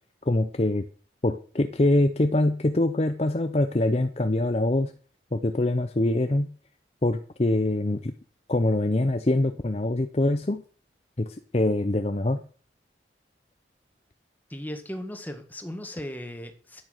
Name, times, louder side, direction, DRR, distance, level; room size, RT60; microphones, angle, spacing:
voice 1, 0.3-0.8 1.2-4.9 5.3-6.5 7.0-8.1 8.5-10.6 11.2-12.4, left 1 dB, 35° left, 9 dB, 0.7 m, -24 dB
voice 2, 14.5-16.8, equal, 10° left, 6 dB, 1.8 m, -37 dB
12.5 x 8.9 x 6.6 m, 0.42 s
head